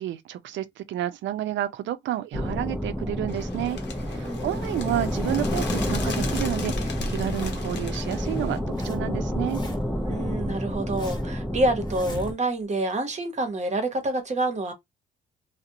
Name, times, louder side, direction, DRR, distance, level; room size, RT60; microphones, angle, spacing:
voice 1, 0.0-3.8 4.1-8.6 8.8-9.6, right 13 dB, 70° right, 0.4 m, -30 dB
sound 1, 2.3-12.3, equal, ahead, 0.6 m, -29 dB
Bird, 3.3-8.6, left 5 dB, 60° left, 0.8 m, -38 dB
voice 2, 4.2-4.6 10.1-14.7, right 2 dB, 35° right, 0.9 m, -27 dB
Zipper (clothing), 7.1-7.8 8.4-9.0 9.2-10.0 10.5-11.4 11.8-12.6, left 1 dB, 20° left, 1.1 m, -41 dB
2.4 x 2.1 x 2.6 m
cardioid pair, 90°, 20 cm